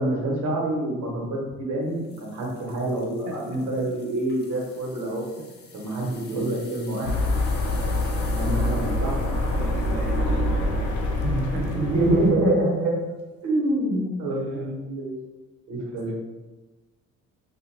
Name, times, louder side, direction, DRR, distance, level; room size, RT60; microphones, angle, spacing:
voice 1, 0.0-5.2 5.7-7.1 8.3-9.2 11.2-12.9 13.4-15.2 15.7-16.1, right 1 dB, 80° right, -3 dB, 1.0 m, -26 dB
sound 1, 1.9-11.8 12.3-12.5 13.1-13.2, left 4 dB, 35° left, 0.6 m, -49 dB
voice 2, 3.3-3.7 5.4-5.5 9.5-11.1 11.5-12.0 14.3-14.9 15.8-16.1, right 4 dB, 50° right, 0 dB, 0.4 m, -41 dB
sound 2, 7.0-12.3, left 1 dB, 80° left, 0.6 m, -25 dB
2.4 x 2.3 x 3.2 m, 1.2 s
cardioid pair, 90°, 30 cm